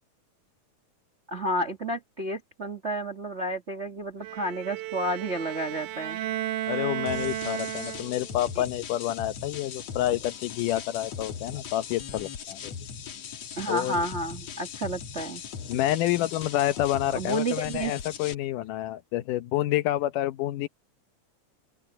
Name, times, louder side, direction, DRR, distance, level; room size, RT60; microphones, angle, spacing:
voice 1, 1.3-6.2 13.6-15.4 17.1-17.9, right 1 dB, 40° right, 0.9 m, -31 dB
Bowed string instrument, 4.2-8.4, right 13 dB, 80° right, 2.3 m, -34 dB
voice 2, 6.7-12.7 13.7-14.0 15.7-20.7, left 14 dB, 90° left, 2.5 m, -28 dB
sound 1, 7.1-18.3, left 7 dB, 60° left, 2.6 m, -39 dB
open air
omnidirectional pair, 3.6 m